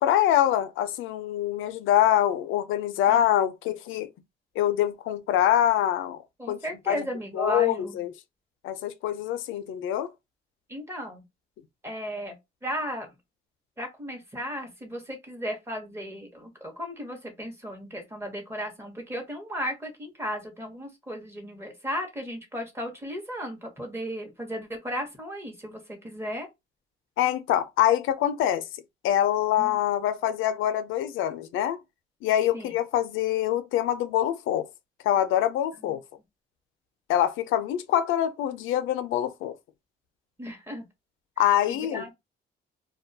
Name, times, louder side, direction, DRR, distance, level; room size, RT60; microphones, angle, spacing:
voice 1, 0.0-4.1 4.6-6.2 6.5-6.6 6.9-7.1 7.3-8.1 8.6-10.1 27.2-28.6 29.0-31.8 32.2-34.7 35.0-36.0 37.1-39.5 41.4-42.0, left 11 dB, 85° left, 0.4 m, -24 dB
voice 2, 6.4-8.0 10.7-11.2 11.8-12.4 12.6-13.1 13.8-26.5 29.6-29.8 32.5-32.7 35.9-36.0 40.4-40.8 41.7-42.1, equal, 10° right, 0.9 m, -35 dB
2.2 x 2.2 x 2.6 m
cardioid pair, 90°, 20 cm